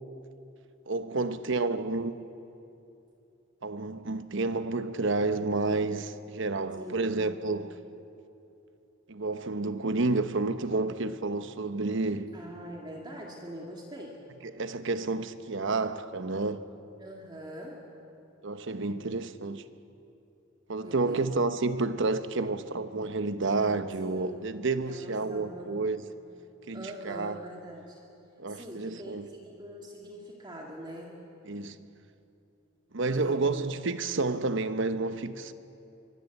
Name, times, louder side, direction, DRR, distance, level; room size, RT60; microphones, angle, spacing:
voice 1, 0.9-2.1 3.6-7.8 9.1-12.3 14.6-16.6 18.4-19.6 20.7-26.1 26.7-27.4 28.4-29.3 31.5-31.8 32.9-35.5, right 3 dB, 65° right, 1.0 m, -30 dB
voice 2, 6.8-7.2 12.3-14.2 17.0-17.8 20.8-21.4 24.0-24.5 24.9-25.7 26.7-28.0 28.5-31.2 33.1-33.7, equal, 20° right, 2.3 m, -43 dB
24.5 x 23.0 x 8.4 m
head